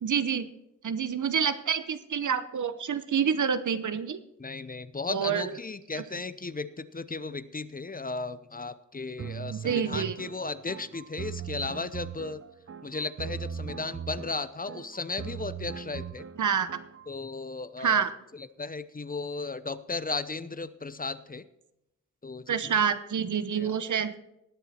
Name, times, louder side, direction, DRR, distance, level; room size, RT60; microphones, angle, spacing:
voice 1, 0.0-0.5 0.8-4.2 5.1-5.5 9.5-10.2 16.4-16.7 17.8-18.1 22.5-24.1, right 7 dB, 70° right, 12 dB, 0.9 m, -27 dB
voice 2, 4.4-12.4 12.8-16.3 17.1-18.0 18.3-21.5 22.2-22.8 23.6-23.8, left 3 dB, 30° left, 14 dB, 0.7 m, -35 dB
sound 1, 9.2-17.1, right 7 dB, 45° right, 0.6 m, -39 dB
19.0 x 7.2 x 4.3 m, 0.87 s
cardioid pair, 60°, 31 cm